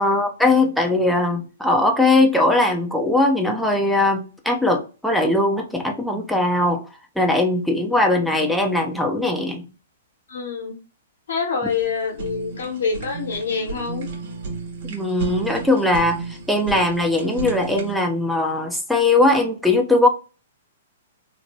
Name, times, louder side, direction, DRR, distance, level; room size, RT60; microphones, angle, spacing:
voice 1, 0.0-6.8 7.2-9.6 14.9-20.1, left 2 dB, ahead, 2 dB, 0.5 m, -20 dB
voice 2, 10.3-10.7 11.3-14.1, left 5 dB, 70° left, 1 dB, 1.0 m, -26 dB
Fire, 11.7-18.0, right 4 dB, 55° right, 1.1 m, -33 dB
2.7 x 2.1 x 2.9 m, 0.33 s
hypercardioid pair, 120°, 0 cm